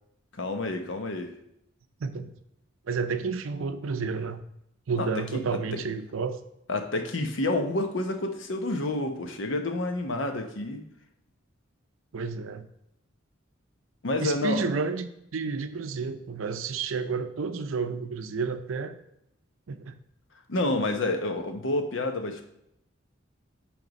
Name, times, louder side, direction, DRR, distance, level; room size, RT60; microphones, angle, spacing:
voice 1, 0.4-1.3 5.0-5.4 6.7-10.8 14.0-14.7 20.5-22.4, left 2 dB, 70° left, 6 dB, 0.8 m, -29 dB
voice 2, 2.0-2.3 2.8-4.4 4.9-6.4 12.1-12.7 14.2-19.0 19.7-20.0, right 4 dB, 85° right, 10 dB, 0.5 m, -31 dB
7.8 x 3.5 x 5.2 m, 0.79 s
head